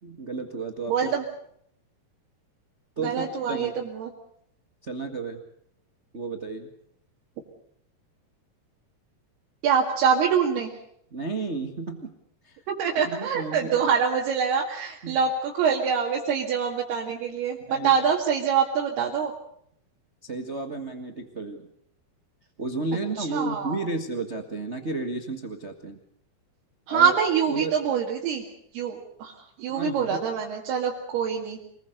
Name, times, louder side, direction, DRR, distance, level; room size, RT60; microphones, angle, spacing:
voice 1, 0.0-1.1 3.0-3.7 4.8-5.4 6.1-6.7 11.1-12.2 12.4-12.6 13.0-13.8 15.0-15.2 17.7-17.9 20.2-21.7 22.6-26.0 26.9-27.2 27.5-27.8 29.7-30.2, right 3 dB, 65° right, 4 dB, 0.6 m, -32 dB
voice 2, 0.9-1.2 3.0-4.1 9.6-10.7 12.7-19.3 23.2-23.8 26.9-28.5 28.7-31.6, right 7 dB, 80° right, -2 dB, 4.2 m, -25 dB
27.0 x 20.5 x 6.7 m, 0.70 s
omnidirectional pair, 4.5 m